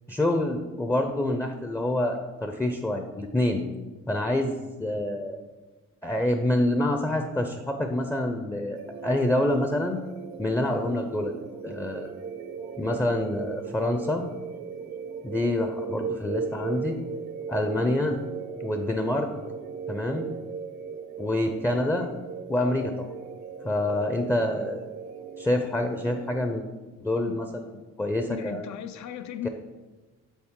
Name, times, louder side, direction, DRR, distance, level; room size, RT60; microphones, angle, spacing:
voice 1, 0.1-3.6 4.1-5.4 6.0-10.0 10.4-11.3 11.6-12.1 12.8-14.2 15.2-17.0 17.5-18.2 18.6-19.3 19.9-20.3 21.2-22.1 22.5-23.1 23.6-24.8 25.4-26.6 27.0-27.6 28.0-28.6 29.4-29.5, left 1 dB, 10° left, 5 dB, 0.5 m, -27 dB
sound 1, 8.7-26.5, right 6 dB, 65° right, 0.6 m, -37 dB
voice 2, 28.3-29.5, left 9 dB, 70° left, 11 dB, 0.5 m, -36 dB
7.1 x 3.8 x 3.7 m, 1.2 s
cardioid pair, 80°, 30 cm